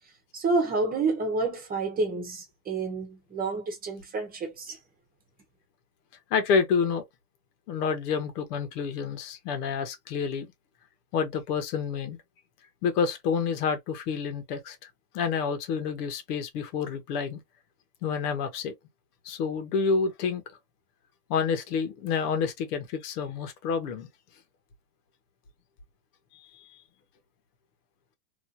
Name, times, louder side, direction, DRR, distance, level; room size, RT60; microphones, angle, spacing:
voice 1, 0.3-4.8, right 3 dB, 20° right, 1.0 m, -29 dB
voice 2, 6.3-7.0 7.7-10.5 11.1-12.2 12.8-14.9 15.1-17.4 18.0-18.7 19.2-20.4 21.3-24.1 26.5-26.7, left 6 dB, 75° left, 1.4 m, -28 dB
3.1 x 2.8 x 2.6 m
supercardioid pair, 150°, 47 cm